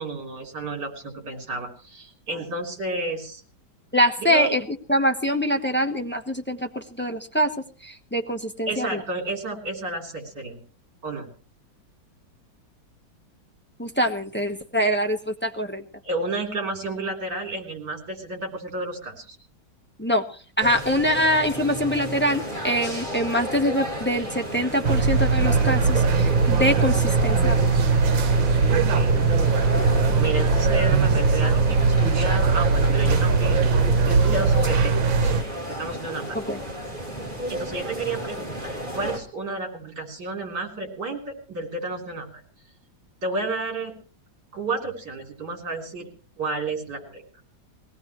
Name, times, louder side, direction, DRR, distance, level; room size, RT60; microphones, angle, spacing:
voice 1, 0.0-3.4 4.2-4.5 8.7-10.6 11.0-11.3 16.0-19.4 28.7-29.7 30.2-35.3 35.7-36.4 37.5-42.4 43.2-43.9 44.5-46.1 46.4-47.2, right 2 dB, 60° right, 2 dB, 4.2 m, -31 dB
voice 2, 3.9-4.6 4.9-7.5 7.8-9.0 13.8-15.8 20.0-20.2 20.6-27.7 36.3-36.6, equal, 10° left, 4 dB, 0.8 m, -24 dB
sound 1, 20.6-39.2, equal, 25° right, 3.5 m, -32 dB
sound 2, 24.8-35.4, right 4 dB, 90° right, 1.8 m, -20 dB
22.0 x 17.5 x 3.1 m, 0.38 s
omnidirectional pair, 2.1 m